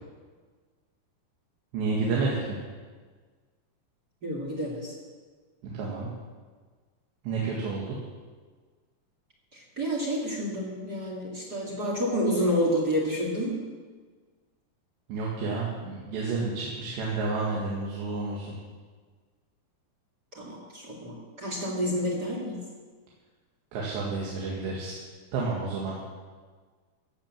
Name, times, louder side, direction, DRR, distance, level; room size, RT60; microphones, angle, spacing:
voice 1, 1.7-2.6 5.6-6.1 7.2-8.0 15.1-18.6 23.7-25.0 25.3-26.0, right 3 dB, 85° right, -4 dB, 4.1 m, -30 dB
voice 2, 4.2-4.9 9.5-13.6 20.3-22.6, equal, 30° right, -3 dB, 2.0 m, -29 dB
16.0 x 7.7 x 7.5 m, 1.5 s
omnidirectional pair, 4.9 m